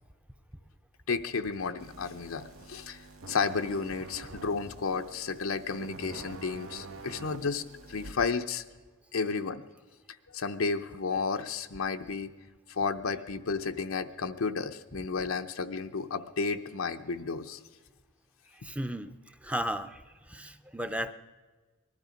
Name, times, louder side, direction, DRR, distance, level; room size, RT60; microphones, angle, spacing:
voice 1, 1.1-3.0 3.3-7.6 7.9-8.6 9.1-9.6 10.3-12.3 12.7-17.6, left 5 dB, 85° left, 9 dB, 0.7 m, -32 dB
sound 1, 1.8-8.1, right 3 dB, 90° right, 1.0 m, -46 dB
voice 2, 18.5-21.1, equal, 5° right, 9 dB, 0.5 m, -35 dB
20.0 x 12.0 x 5.1 m, 1.3 s
head